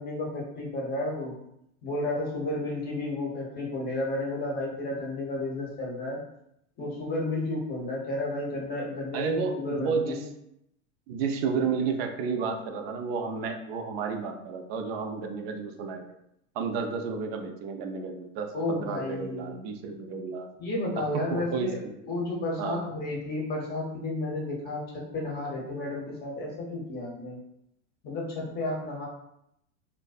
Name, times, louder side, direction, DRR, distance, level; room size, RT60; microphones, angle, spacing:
voice 1, 0.0-1.3 1.8-6.2 6.8-10.2 18.5-19.6 20.6-24.8 25.1-27.4 28.0-29.1, left 2 dB, 25° left, -2 dB, 0.7 m, -32 dB
voice 2, 9.1-10.2 11.1-16.1 16.5-20.5 21.0-21.9 22.6-22.8, right 5 dB, 55° right, 5 dB, 0.4 m, -31 dB
2.5 x 2.1 x 2.3 m, 0.78 s
supercardioid pair, 120°, 38 cm